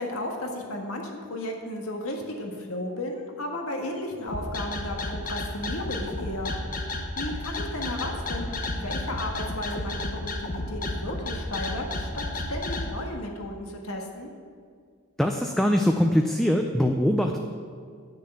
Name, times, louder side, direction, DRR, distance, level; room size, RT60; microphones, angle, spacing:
voice 1, 0.0-6.5 6.9-14.3, left 1 dB, 70° left, 1 dB, 1.7 m, -34 dB
sound 1, 4.3-12.9, left 2 dB, 40° left, 1.1 m, -32 dB
voice 2, 15.2-17.4, equal, ahead, 3 dB, 0.4 m, -22 dB
10.0 x 6.7 x 7.9 m, 2.1 s
head